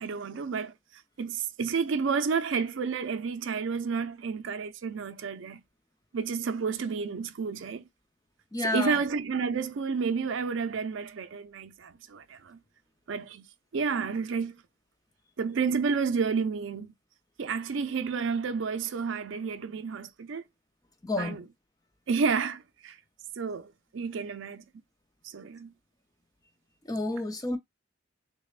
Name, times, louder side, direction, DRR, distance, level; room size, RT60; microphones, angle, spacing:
voice 1, 0.0-0.7 1.2-5.6 6.1-7.9 8.6-12.6 13.1-13.4 13.7-14.6 15.4-16.9 17.4-20.4 21.2-21.5 22.1-23.0 23.4-24.6 25.2-25.7, right 5 dB, 70° right, 0.4 m, -30 dB
voice 2, 8.5-9.0 21.0-21.4 26.9-27.6, left 2 dB, 15° left, 0.5 m, -30 dB
6.3 x 2.1 x 2.4 m
head